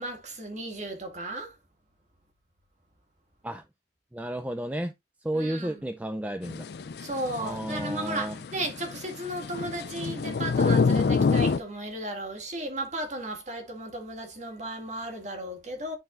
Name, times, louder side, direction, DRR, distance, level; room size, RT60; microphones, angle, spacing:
voice 1, 0.0-1.6 5.3-5.8 7.0-16.0, right 1 dB, 40° right, 1.9 m, -35 dB
voice 2, 4.1-4.9 5.2-6.6 7.4-8.3, right 1 dB, 10° right, 0.4 m, -32 dB
sound 1, 6.4-11.6, left 4 dB, 65° left, 0.4 m, -27 dB
11.5 x 4.1 x 2.5 m
head